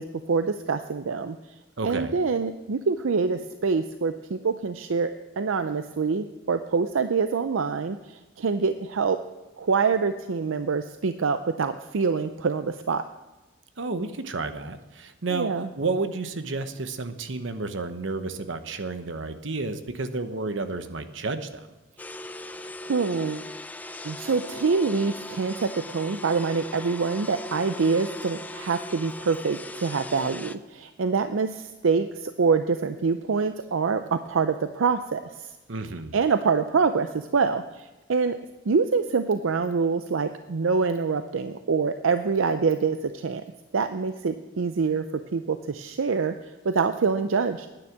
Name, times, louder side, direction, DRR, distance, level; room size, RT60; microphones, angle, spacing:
voice 1, 0.0-1.4 1.8-8.0 8.4-9.2 9.6-13.0 15.3-15.7 22.4-23.5 24.0-35.5 36.1-38.4 38.7-43.4 43.7-45.0 45.3-46.3 46.6-47.7, right 5 dB, 90° right, 10 dB, 0.5 m, -25 dB
voice 2, 1.8-2.2 13.8-21.7 35.7-36.1, right 3 dB, 70° right, 9 dB, 1.0 m, -31 dB
sound 1, 22.0-30.6, left 2 dB, 10° left, 0.3 m, -39 dB
10.0 x 9.7 x 7.2 m, 1.1 s
head